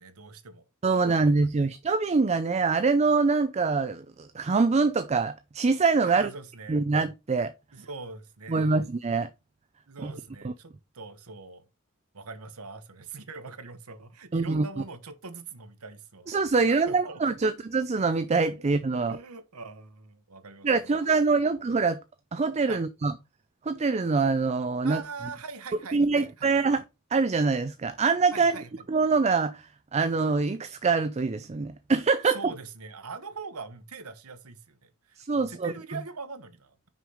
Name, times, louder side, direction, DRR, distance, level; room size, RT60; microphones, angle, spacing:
voice 1, 0.0-1.5 6.0-6.8 7.7-8.9 9.9-11.7 12.1-16.3 16.7-17.3 19.0-21.2 22.7-22.8 24.8-26.5 28.3-28.8 32.2-36.8, right 4 dB, 80° right, 1.2 m, -43 dB
voice 2, 0.8-6.3 6.7-7.5 8.5-9.3 10.0-10.1 10.4-10.5 14.3-14.7 16.3-19.2 20.6-22.0 22.3-23.1 23.7-25.0 25.9-26.8 27.1-28.6 28.9-32.5 35.2-35.7, right 4 dB, 30° right, 0.4 m, -24 dB
6.1 x 5.5 x 4.8 m
head